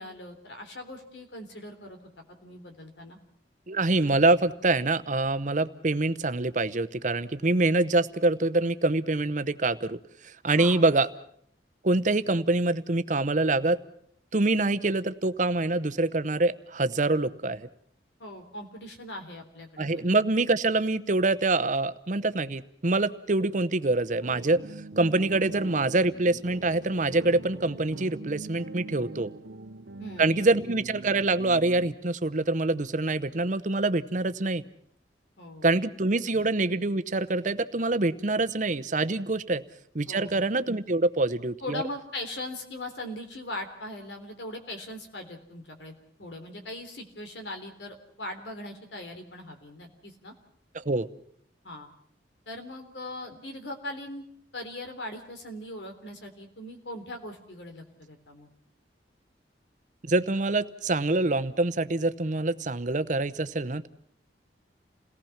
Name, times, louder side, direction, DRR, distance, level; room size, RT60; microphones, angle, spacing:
voice 1, 0.0-2.0 2.4-3.2 10.6-10.8 18.2-20.1 25.5-25.6 30.0-30.5 35.4-35.7 36.3-36.4 40.1-40.5 41.6-50.4 51.6-51.9 52.5-54.2 54.5-58.5, left 1 dB, 85° left, 5 dB, 3.6 m, -40 dB
voice 2, 3.7-10.0 10.2-11.1 11.8-13.8 14.3-17.7 19.8-24.6 25.0-29.3 30.2-34.6 35.6-39.6 39.9-41.8 50.7-51.1 60.0-63.9, right 2 dB, 45° right, 13 dB, 0.9 m, -25 dB
sound 1, 24.2-31.9, right 2 dB, 80° right, 0.9 m, -42 dB
28.5 x 18.5 x 5.9 m, 0.65 s
head